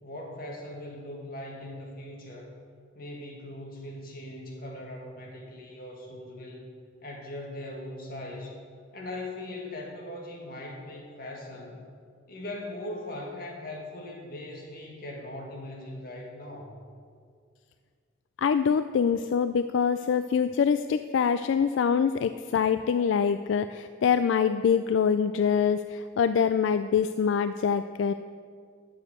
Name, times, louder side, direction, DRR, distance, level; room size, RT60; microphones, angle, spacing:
voice 1, 0.0-2.5 3.0-6.7 7.0-8.6 8.9-11.8 12.3-16.8, left 1 dB, 50° left, 0 dB, 1.9 m, -40 dB
voice 2, 18.4-28.1, left 6 dB, 75° left, 11 dB, 0.3 m, -25 dB
9.4 x 7.2 x 7.9 m, 2.1 s
head